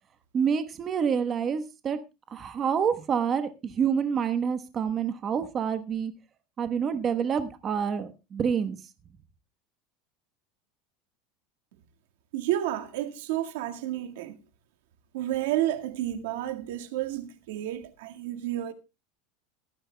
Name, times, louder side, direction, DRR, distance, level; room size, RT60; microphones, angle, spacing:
voice 1, 0.3-2.0 2.3-6.1 6.6-8.8, right 7 dB, 25° right, 1.1 m, -27 dB
voice 2, 12.3-14.4 15.1-18.7, right 13 dB, 80° right, 1.8 m, -31 dB
18.0 x 14.0 x 2.2 m
supercardioid pair, 155°, 0 cm